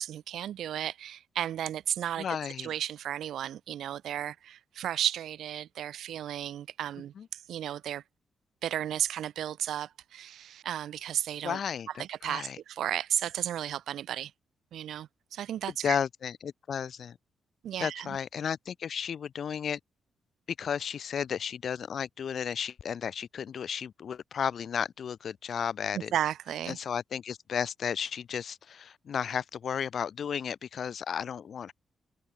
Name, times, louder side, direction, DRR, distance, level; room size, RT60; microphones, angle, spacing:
voice 1, 0.0-8.0 8.6-11.6 12.0-14.3 14.7-16.0 17.6-18.2 25.9-26.8, right 11 dB, 80° right, 1.4 m, -34 dB
voice 2, 2.2-2.7 7.2-7.3 11.4-12.6 15.8-17.2 17.8-19.8 20.6-26.1 26.7-31.7, left 7 dB, 50° left, 0.6 m, -33 dB
wide cardioid pair, 150°, 0 cm